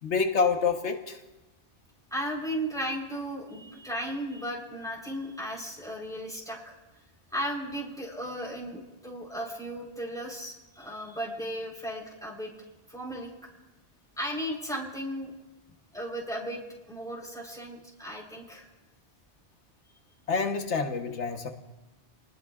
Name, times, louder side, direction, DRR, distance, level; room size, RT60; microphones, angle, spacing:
voice 1, 0.0-1.2 20.3-21.5, left 5 dB, 85° left, 5 dB, 1.3 m, -27 dB
voice 2, 2.1-6.8 7.3-12.5 12.9-13.3 14.2-15.3 15.9-16.6 16.9-18.7, equal, 5° left, -1 dB, 3.7 m, -35 dB
29.0 x 19.5 x 2.4 m, 1.1 s
omnidirectional pair, 1.2 m